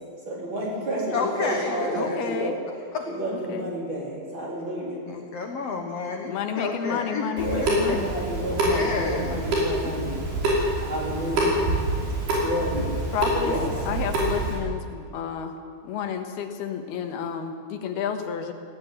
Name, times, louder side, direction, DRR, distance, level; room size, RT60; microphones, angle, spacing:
voice 1, 0.2-2.5 3.1-5.0 7.3-10.2 10.7-11.6 12.4-12.9 13.4-13.7, right 1 dB, 30° right, -3 dB, 4.9 m, -30 dB
voice 2, 1.1-2.2 2.9-3.1 5.1-8.0 8.7-9.3 9.8-9.9, left 4 dB, 55° left, 3 dB, 1.9 m, -30 dB
voice 3, 2.0-2.6 3.3-3.7 6.3-8.1 11.3-11.8 13.1-13.6 13.9-15.6 15.8-18.5, left 7 dB, 80° left, 6 dB, 3.4 m, -31 dB
Water tap faucet / Sink (filling or washing) / Drip, 7.4-14.5, right 1 dB, 80° right, 7.4 m, -26 dB
19.0 x 16.5 x 9.6 m, 2.2 s
omnidirectional pair, 4.6 m